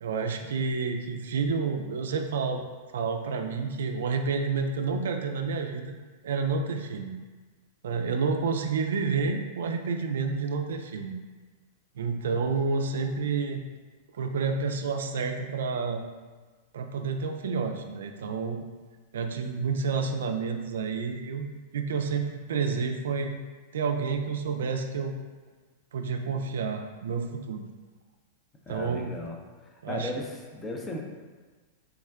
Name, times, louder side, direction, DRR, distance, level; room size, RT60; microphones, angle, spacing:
voice 1, 0.0-2.6 2.9-5.9 6.2-7.1 7.8-11.1 12.0-13.6 14.2-16.0 16.7-18.6 19.1-21.5 21.7-23.4 23.7-25.2 25.9-27.6 28.7-29.1 29.8-30.1, right 5 dB, 80° right, 5 dB, 0.3 m, -29 dB
voice 2, 28.7-29.3 29.6-31.0, left 1 dB, 20° left, 1 dB, 0.5 m, -36 dB
3.4 x 2.2 x 3.4 m, 1.4 s
hypercardioid pair, 110°, 0 cm